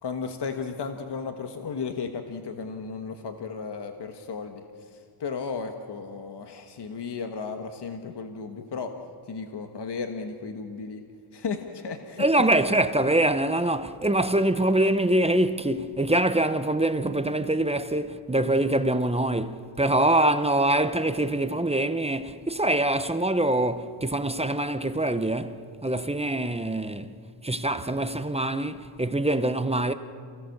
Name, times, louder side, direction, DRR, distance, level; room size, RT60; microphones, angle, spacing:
voice 1, 0.0-4.6 4.9-8.9 9.3-11.0 11.3-12.2, left 5 dB, 55° left, 1.5 m, -34 dB
voice 2, 12.2-27.1 27.4-29.9, right 1 dB, 10° right, 0.8 m, -24 dB
28.5 x 17.0 x 6.6 m
wide cardioid pair, 110°, 50 cm